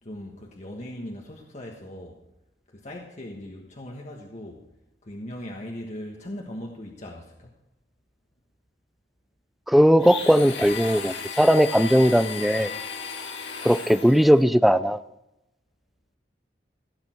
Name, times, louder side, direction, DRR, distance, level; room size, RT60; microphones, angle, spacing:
voice 1, 0.0-2.2 2.7-4.6 5.0-7.5, left 1 dB, 40° left, 0 dB, 1.4 m, -39 dB
voice 2, 9.7-12.7 13.6-15.0, equal, ahead, 14 dB, 0.4 m, -18 dB
Domestic sounds home sounds, 10.0-14.4, left 6 dB, 90° left, 2.1 m, -35 dB
16.5 x 8.8 x 4.5 m, 0.90 s
head